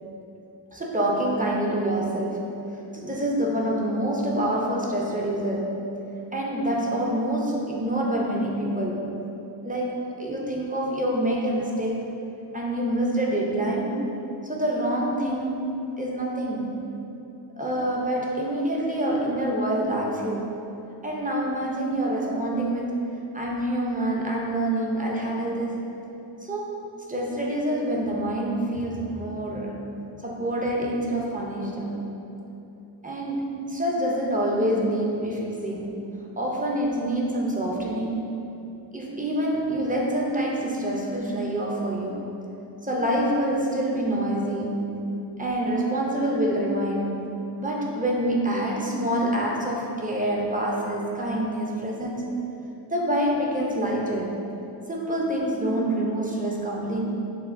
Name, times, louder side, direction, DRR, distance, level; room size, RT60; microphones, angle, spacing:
voice 1, 0.7-2.5 2.9-5.7 6.3-9.0 9.6-12.0 12.5-14.1 14.4-16.7 17.6-20.5 21.0-25.9 26.4-26.8 27.1-29.8 30.2-32.0 33.0-36.1 36.4-38.3 38.9-42.2 42.8-45.1 45.4-47.2 47.6-52.3 52.9-54.4 54.9-57.0, right 1 dB, 20° right, -3 dB, 0.6 m, -26 dB
6.6 x 2.4 x 2.5 m, 2.9 s
wide cardioid pair, 60°, 43 cm